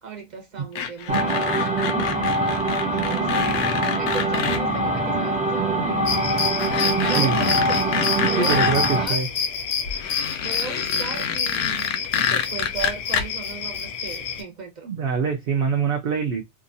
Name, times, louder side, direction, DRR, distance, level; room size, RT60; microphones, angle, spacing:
voice 1, 0.0-2.0 2.8-3.7 3.9-6.1 6.8-8.7 8.9-9.2 10.4-14.9, right 5 dB, 40° right, 1.0 m, -36 dB
sound 1, 0.7-4.6 5.8-5.9 6.4-8.9 9.8-13.2, left 8 dB, 90° left, 0.9 m, -27 dB
sound 2, 1.1-9.1, right 1 dB, 10° right, 0.3 m, -23 dB
sound 3, 6.1-14.4, left 6 dB, 65° left, 0.8 m, -28 dB
voice 2, 8.4-9.3 14.8-16.4, right 6 dB, 60° right, 0.7 m, -24 dB
2.8 x 2.4 x 2.5 m
omnidirectional pair, 1.3 m